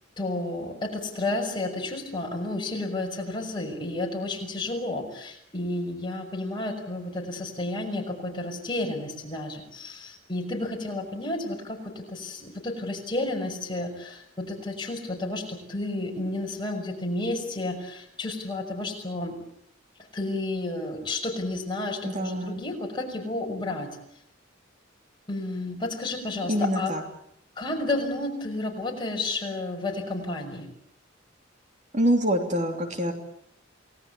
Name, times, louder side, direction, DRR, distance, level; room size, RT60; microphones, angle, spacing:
voice 1, 0.2-19.3 20.1-23.9 25.3-26.9 27.6-30.7, left 2 dB, 25° left, 1 dB, 6.2 m, -31 dB
voice 2, 22.0-22.6 26.5-27.0 31.9-33.1, equal, 35° right, 4 dB, 3.1 m, -25 dB
29.0 x 19.5 x 8.5 m, 0.72 s
head